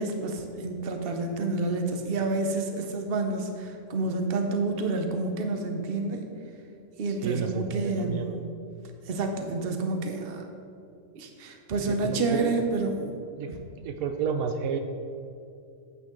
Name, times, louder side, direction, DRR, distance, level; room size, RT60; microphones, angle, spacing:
voice 1, 0.0-6.3 7.0-8.3 9.1-10.5 11.1-13.6, right 3 dB, 50° right, 4 dB, 1.0 m, -29 dB
voice 2, 7.2-8.4 11.9-12.5 13.4-13.5 13.8-14.8, right 6 dB, 80° right, 6 dB, 1.0 m, -31 dB
8.9 x 8.1 x 3.8 m, 2.5 s
omnidirectional pair, 1.5 m